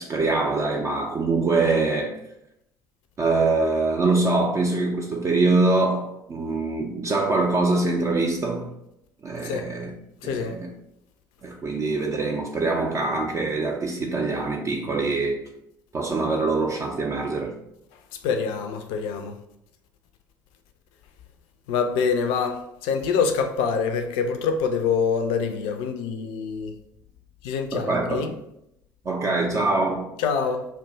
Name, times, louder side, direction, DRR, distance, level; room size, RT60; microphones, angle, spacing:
voice 1, 0.0-2.2 3.2-8.7 9.2-9.9 10.2-10.7 11.4-15.5 15.9-17.5 27.7-28.3 29.1-30.1, right 3 dB, 30° right, 0.4 m, -24 dB
voice 2, 10.2-10.6 18.1-19.4 21.7-26.8 27.4-28.3 30.2-30.7, left 6 dB, 55° left, 0.4 m, -25 dB
2.6 x 2.2 x 3.8 m
figure-of-eight pair, 55°, 10 cm